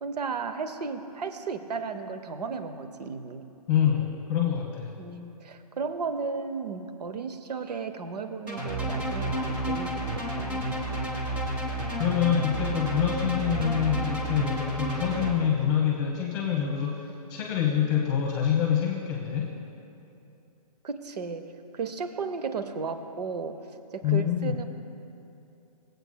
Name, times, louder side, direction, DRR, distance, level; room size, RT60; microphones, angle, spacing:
voice 1, 0.0-3.5 5.0-10.6 20.8-21.5 21.7-23.6 23.9-24.7, right 5 dB, 75° right, 9 dB, 0.7 m, -34 dB
voice 2, 3.7-5.0 12.0-19.6 24.0-24.6, left 9 dB, 30° left, 0 dB, 1.0 m, -26 dB
sound 1, 8.5-15.3, right 1 dB, 5° right, 0.3 m, -30 dB
17.5 x 8.0 x 2.2 m, 2.7 s
hypercardioid pair, 155°, 21 cm